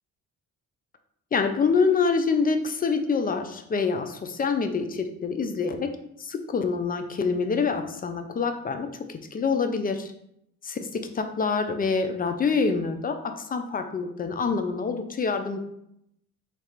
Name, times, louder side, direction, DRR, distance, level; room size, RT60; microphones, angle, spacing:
voice 1, 1.3-5.9 6.2-10.1 11.1-15.6, left 5 dB, 30° left, 7 dB, 0.4 m, -26 dB
3.2 x 2.4 x 4.4 m, 0.77 s
cardioid pair, 90°, 30 cm